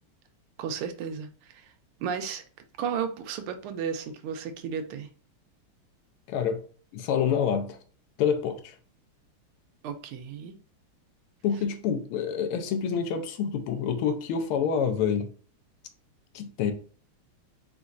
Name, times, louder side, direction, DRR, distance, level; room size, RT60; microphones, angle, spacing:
voice 1, 0.6-1.7 2.0-2.4 2.8-5.1 9.8-10.5, right 7 dB, 80° right, 1.5 m, -33 dB
voice 2, 6.3-6.6 6.9-7.8 8.2-8.7 11.4-15.3 16.3-16.7, left 7 dB, 85° left, 1.6 m, -27 dB
4.4 x 4.0 x 2.5 m
omnidirectional pair, 2.4 m